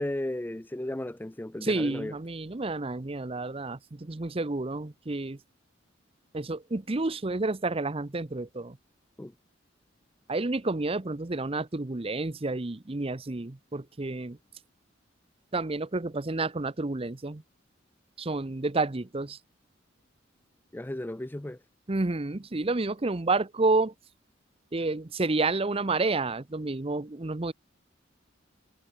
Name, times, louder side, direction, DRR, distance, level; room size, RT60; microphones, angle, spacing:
voice 1, 0.0-2.2 9.2-9.3 20.7-21.6, left 1 dB, 10° left, 0.5 m, -34 dB
voice 2, 1.6-5.4 6.3-8.8 10.3-14.4 15.5-17.4 18.2-19.4 21.9-23.9 24.7-27.5, right 3 dB, 30° right, 0.7 m, -30 dB
head